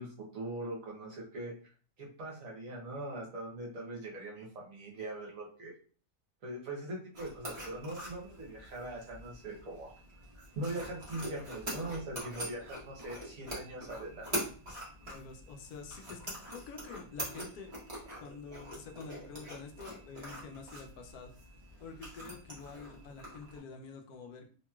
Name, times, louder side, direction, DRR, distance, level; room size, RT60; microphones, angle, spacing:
voice 1, 0.0-1.5 2.0-5.7 6.4-9.9 10.3-14.3, right 1 dB, 65° right, -2 dB, 1.3 m, -41 dB
sound 1, 7.1-23.6, equal, 25° right, 1.0 m, -44 dB
voice 2, 15.1-17.7 18.2-21.3 21.8-24.5, left 4 dB, 80° left, 3 dB, 1.1 m, -47 dB
2.9 x 2.9 x 2.3 m, 0.41 s
omnidirectional pair, 1.6 m